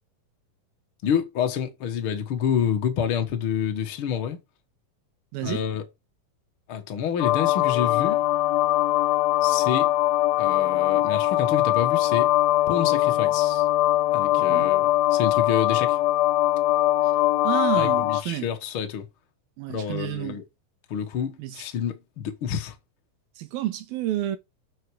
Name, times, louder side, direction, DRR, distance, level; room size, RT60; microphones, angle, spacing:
voice 1, 1.0-4.4 5.4-5.8 6.7-8.2 9.4-9.9 10.4-12.3 12.7-13.7 14.1-16.0 17.8-19.0 19.7-20.4 20.9-22.7, left 8 dB, 55° left, 1.5 m, -28 dB
voice 2, 5.3-5.6 14.4-14.7 17.0-17.1 17.4-18.5 19.6-20.4 21.4-21.6 23.4-24.4, right 13 dB, 85° right, 3.1 m, -30 dB
sound 1, 7.2-18.2, left 15 dB, 85° left, 2.4 m, -21 dB
8.0 x 6.4 x 4.8 m
omnidirectional pair, 4.2 m